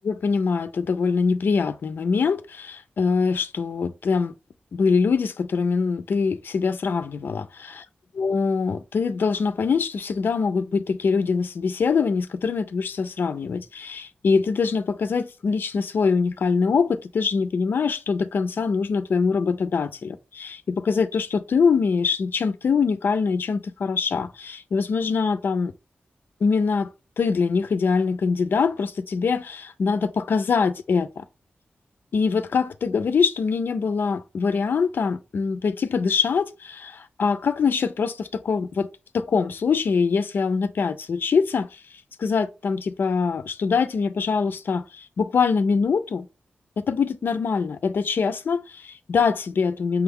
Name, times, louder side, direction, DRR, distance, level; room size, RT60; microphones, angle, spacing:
voice 1, 0.0-4.3 4.7-7.8 8.2-25.7 26.4-26.9 27.2-31.2 32.1-38.9 39.1-41.8 42.2-46.3 46.9-50.0, left 5 dB, 65° left, 0.4 m, -23 dB
6.1 x 2.3 x 3.5 m
wide cardioid pair, 175°, 4 cm